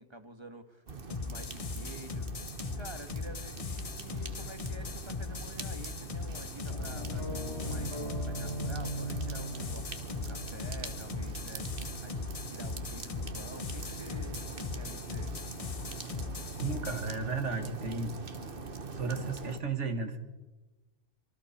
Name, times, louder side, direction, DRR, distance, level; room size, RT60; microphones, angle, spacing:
voice 1, 0.0-2.3 2.7-15.3, right 1 dB, 25° right, 7 dB, 1.7 m, -49 dB
sound 1, 0.9-19.6, right 4 dB, 50° right, 1.5 m, -43 dB
sound 2, 1.1-17.1, left 5 dB, 35° left, 0.8 m, -39 dB
sound 3, 6.7-14.6, right 1 dB, 70° left, 4.8 m, -41 dB
voice 2, 16.6-18.2 19.0-20.2, right 4 dB, 75° right, 7 dB, 2.2 m, -34 dB
26.0 x 24.5 x 4.4 m, 1.2 s
omnidirectional pair, 1.2 m